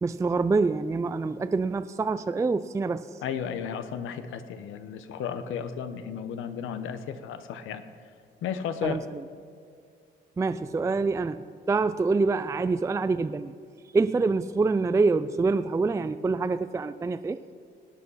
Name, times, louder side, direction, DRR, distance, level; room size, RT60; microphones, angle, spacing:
voice 1, 0.0-3.2 8.8-9.0 10.4-13.5 13.9-17.4, right 3 dB, 15° right, 12 dB, 0.3 m, -26 dB
voice 2, 3.2-7.8 8.4-9.0, left 8 dB, 85° left, 10 dB, 0.9 m, -34 dB
18.5 x 8.4 x 5.6 m, 2.2 s
cardioid pair, 90°, 20 cm